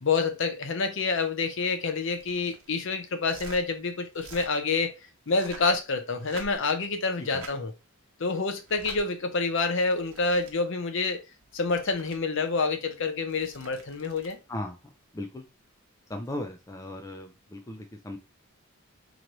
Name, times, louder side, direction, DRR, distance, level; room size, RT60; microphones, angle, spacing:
voice 1, 0.0-4.9 5.3-7.7 8.2-11.2 11.5-14.4, left 4 dB, 55° left, 0.7 m, -28 dB
sound 1, 2.0-2.8 3.2-3.6 4.1-4.5 5.2-5.8 6.2-6.8 7.2-7.6 8.6-9.0 9.8-10.5 11.4-12.2 13.2-14.4 16.3-16.4, right 3 dB, 75° right, 0.9 m, -47 dB
voice 2, 15.1-15.4 16.1-18.2, left 1 dB, 15° left, 0.4 m, -37 dB
3.9 x 3.1 x 3.0 m
head